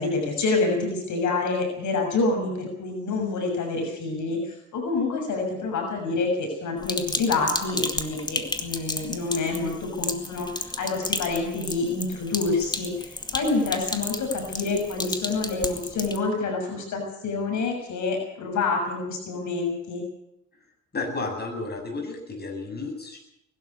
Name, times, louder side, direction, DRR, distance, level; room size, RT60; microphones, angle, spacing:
voice 1, 0.0-20.0, left 3 dB, 75° left, 2 dB, 6.8 m, -27 dB
Sink (filling or washing), 6.8-16.2, left 2 dB, 15° left, 2.3 m, -33 dB
voice 2, 20.9-23.2, left 3 dB, 35° left, 2 dB, 7.7 m, -32 dB
21.5 x 12.5 x 9.7 m, 0.82 s
cardioid pair, 90°, 30 cm